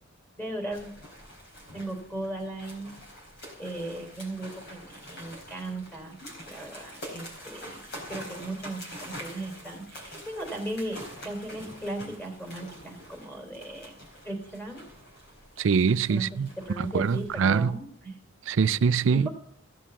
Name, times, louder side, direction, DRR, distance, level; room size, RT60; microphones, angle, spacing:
voice 1, 0.4-0.9 1.7-2.9 3.6-6.2 6.5-7.8 8.1-14.0 14.2-14.8 16.1-16.3 16.6-18.2 19.1-19.3, right 1 dB, 10° left, 3.5 m, -37 dB
sound 1, 0.7-17.7, equal, 55° left, 4.1 m, -45 dB
voice 2, 15.6-16.5 16.8-17.8 18.5-19.3, right 6 dB, 65° right, 0.4 m, -24 dB
15.5 x 7.5 x 7.0 m
head